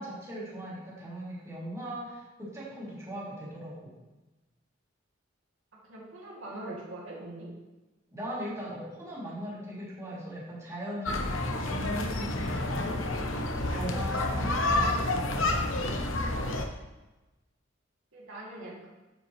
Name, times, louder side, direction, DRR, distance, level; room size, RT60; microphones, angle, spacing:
voice 1, 0.0-3.9 8.1-13.1 13.7-16.1, equal, 15° right, -8 dB, 2.8 m, -39 dB
voice 2, 5.9-7.5 18.1-18.9, right 1 dB, 85° right, -5 dB, 2.5 m, -42 dB
sound 1, 11.1-16.6, left 2 dB, 80° left, 0.9 m, -29 dB
8.8 x 8.0 x 3.1 m, 1.1 s
head